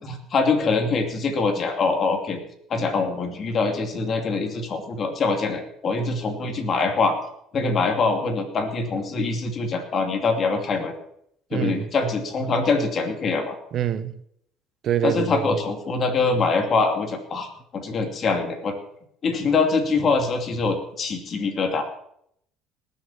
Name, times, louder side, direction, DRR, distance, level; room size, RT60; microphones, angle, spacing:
voice 1, 0.0-2.4 2.7-7.2 7.5-10.9 11.5-13.6 15.0-17.5 17.7-18.7 19.2-21.8, left 4 dB, 40° left, 2.6 m, -24 dB
voice 2, 11.5-11.9 13.7-14.1 14.8-15.4, right 9 dB, 50° right, 1.0 m, -25 dB
19.0 x 7.2 x 7.1 m
cardioid pair, 125°, 0 cm